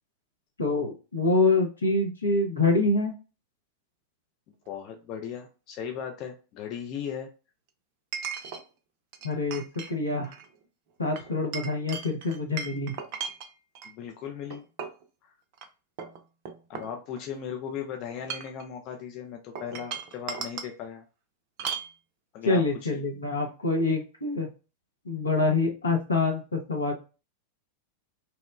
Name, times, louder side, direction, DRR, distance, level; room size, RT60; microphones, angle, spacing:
voice 1, 0.6-3.1 9.2-9.6 9.9-10.3 11.0-12.9 22.4-24.5 25.0-26.9, left 3 dB, 80° left, 1 dB, 0.7 m, -26 dB
voice 2, 4.7-7.3 13.8-14.6 16.7-21.0 22.3-22.6 22.9-23.0, left 8 dB, 40° left, 4 dB, 0.4 m, -37 dB
Chink clink, 4.7-4.8 8.1-8.6 9.1-9.9 10.2-10.5 11.2-13.9 14.5-15.0 15.5-15.7 16.0-17.4 18.1-18.6 19.5-20.7 21.6-21.9, right 6 dB, 45° right, 0.4 m, -37 dB
2.9 x 2.0 x 2.3 m, 0.32 s
figure-of-eight pair, 90°, 0 cm